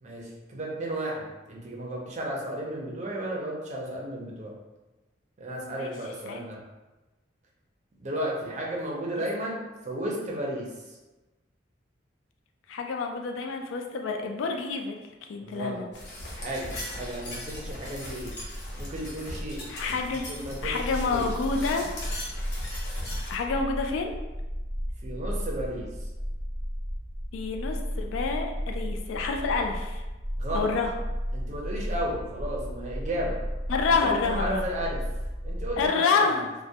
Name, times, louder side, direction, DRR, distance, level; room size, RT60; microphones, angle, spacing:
voice 1, 0.0-4.5 5.4-6.6 8.0-10.7 15.4-15.8 16.3-18.3 18.8-19.6 20.3-21.3 25.0-25.9 30.4-30.7 31.3-33.4 34.0-35.0 35.4-36.4, right 1 dB, 35° right, -3 dB, 0.5 m, -33 dB
voice 2, 12.7-15.0 15.3-15.9 19.7-20.3 20.6-21.9 23.3-24.2 27.3-30.0 30.5-30.9 33.7-34.6 35.8-36.5, left 4 dB, 85° left, 4 dB, 0.3 m, -28 dB
sound 1, 15.9-23.4, left 1 dB, 65° left, 0.7 m, -38 dB
sound 2, 20.6-35.9, equal, 30° left, 0.5 m, -34 dB
2.2 x 2.1 x 2.7 m, 1.1 s
head